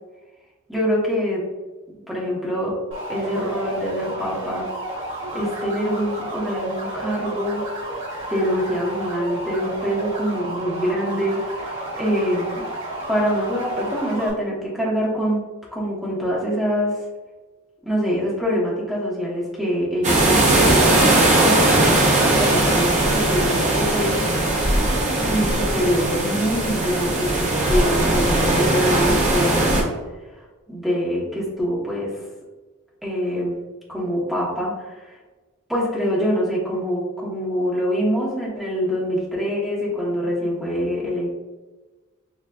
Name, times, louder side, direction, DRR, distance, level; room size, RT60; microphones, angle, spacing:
voice 1, 0.7-1.5 1.9-2.8 3.1-4.7 5.3-7.8 8.3-12.7 13.1-15.4 15.7-17.0 17.8-24.3 25.2-29.9 30.7-32.2 33.0-33.6 33.9-35.1 35.7-41.3, equal, ahead, -6 dB, 1.1 m, -25 dB
sound 1, 2.9-14.3, right 1 dB, 55° right, 1.5 m, -31 dB
sound 2, 20.0-29.8, right 2 dB, 30° right, 0.8 m, -19 dB
6.7 x 2.4 x 2.4 m, 1.2 s
head